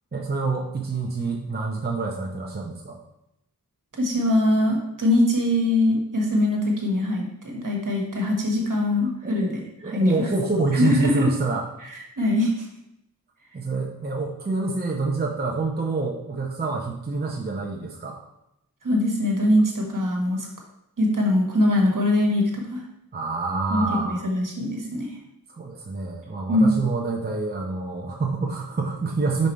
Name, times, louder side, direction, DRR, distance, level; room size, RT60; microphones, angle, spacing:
voice 1, 0.1-3.0 9.2-9.5 9.8-11.7 13.5-18.2 23.1-24.2 25.5-29.5, right 3 dB, 25° right, 0 dB, 0.7 m, -27 dB
voice 2, 4.0-10.3 10.7-11.3 12.2-12.7 18.8-20.5 21.0-22.8 23.7-25.1 26.5-26.7, left 1 dB, 55° right, 0 dB, 1.5 m, -22 dB
5.4 x 4.9 x 4.4 m, 0.83 s
wide cardioid pair, 105°, 37 cm